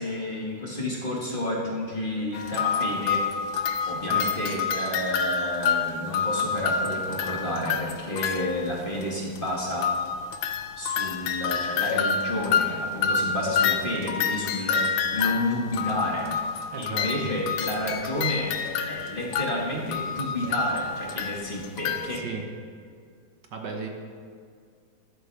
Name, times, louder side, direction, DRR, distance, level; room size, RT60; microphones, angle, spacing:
voice 1, 0.0-3.3 3.9-9.9 10.8-16.3 16.8-18.6 18.9-22.2, left 1 dB, 30° left, -3 dB, 1.8 m, -30 dB
sound 1, 2.3-8.7 9.0-9.1 9.4-9.5 9.7-22.2, left 6 dB, 85° left, 1.4 m, -28 dB
voice 2, 16.7-17.3 22.1-22.4 23.5-23.9, right 4 dB, 65° right, 2 dB, 1.6 m, -35 dB
13.5 x 11.5 x 3.4 m, 2.2 s
omnidirectional pair, 2.1 m